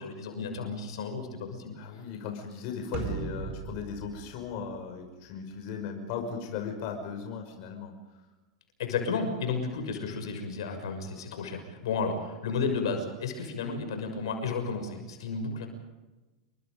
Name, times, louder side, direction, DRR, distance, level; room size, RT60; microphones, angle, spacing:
voice 1, 0.0-2.0 8.8-15.7, left 4 dB, 75° left, 5 dB, 6.4 m, -33 dB
voice 2, 1.8-7.9, left 6 dB, 55° left, 3 dB, 5.7 m, -37 dB
sound 1, 2.9-5.4, right 6 dB, 45° right, 5.3 m, -38 dB
30.0 x 23.5 x 5.3 m, 1.1 s
hypercardioid pair, 105°, 3 cm